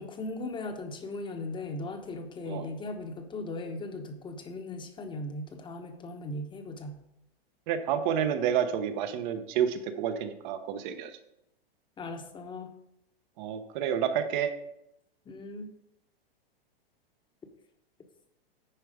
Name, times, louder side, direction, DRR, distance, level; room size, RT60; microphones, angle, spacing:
voice 1, 0.0-7.0 12.0-12.8 15.2-15.7, left 2 dB, 15° left, 5 dB, 1.0 m, -38 dB
voice 2, 7.7-11.1 13.4-14.5, right 8 dB, 50° right, 9 dB, 1.1 m, -29 dB
10.0 x 4.6 x 5.0 m, 0.83 s
hypercardioid pair, 130°, 30 cm